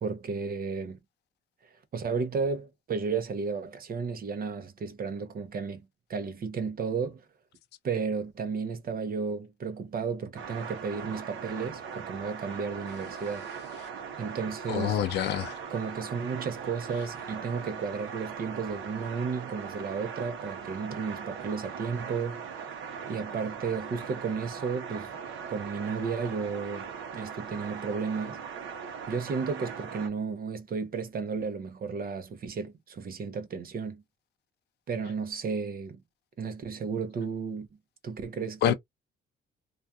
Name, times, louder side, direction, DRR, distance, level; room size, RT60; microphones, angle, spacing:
voice 1, 0.0-1.0 1.9-7.2 7.8-13.5 14.2-15.0 15.7-22.4 23.1-25.1 25.5-28.4 29.1-34.0 34.9-36.0 36.4-37.7 38.0-38.7, right 5 dB, 50° right, 0.7 m, -33 dB
sound 1, 10.3-30.1, right 6 dB, 80° right, 0.8 m, -40 dB
voice 2, 14.7-15.6 16.9-17.0 38.6-38.7, left 10 dB, 60° left, 0.4 m, -27 dB
2.4 x 2.3 x 2.6 m
cardioid pair, 90°, 20 cm